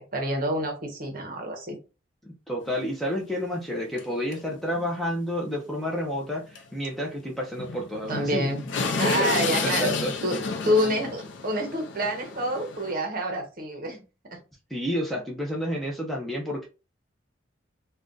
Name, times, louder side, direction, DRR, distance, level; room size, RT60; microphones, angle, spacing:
voice 1, 0.0-1.8 8.1-8.6 9.0-10.0 10.2-10.4 10.6-14.4, equal, 45° right, 0.8 m, -28 dB
voice 2, 2.2-8.5 9.0-10.1 14.7-16.7, equal, ahead, 0.4 m, -30 dB
sound 1, 2.6-2.7 3.2-3.3 4.0-4.1 4.3-4.4 4.7-4.9 6.6-6.7 6.9-7.0 7.6-12.9, left 4 dB, 65° left, 0.5 m, -30 dB
2.4 x 2.2 x 3.7 m
head